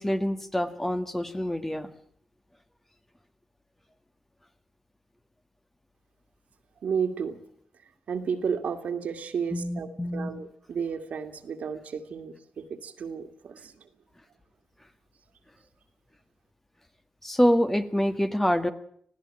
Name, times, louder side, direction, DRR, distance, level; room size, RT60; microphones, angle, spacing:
voice 1, 0.0-1.9 9.5-10.4 17.2-18.7, equal, 10° left, 8 dB, 1.7 m, -26 dB
voice 2, 6.8-7.4 8.1-13.9, right 6 dB, 70° right, 6 dB, 2.3 m, -32 dB
20.5 x 15.5 x 8.9 m, 0.66 s
cardioid pair, 70°, 3 cm